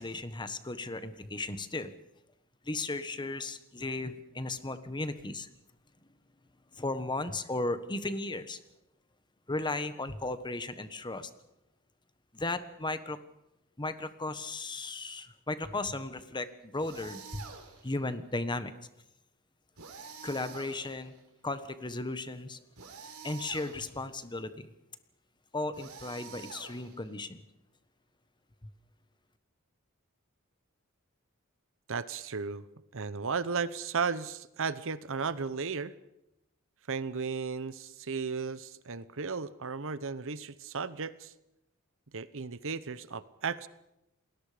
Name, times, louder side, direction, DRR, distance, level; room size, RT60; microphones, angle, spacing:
voice 1, 0.0-1.9 2.6-5.5 6.8-8.6 9.5-11.3 12.3-13.2 13.8-17.4 17.8-18.7 20.2-21.2 21.4-22.6 23.2-24.7 25.5-27.4, left 2 dB, 20° left, 11 dB, 1.3 m, -35 dB
sound 1, 16.8-17.9 19.8-21.2 22.8-24.0 25.7-27.2, right 5 dB, 85° right, 4.3 m, -48 dB
voice 2, 31.9-32.6 32.9-35.9 36.9-41.3 42.1-43.7, right 5 dB, 65° right, 15 dB, 1.0 m, -35 dB
29.0 x 20.5 x 5.1 m, 0.88 s
head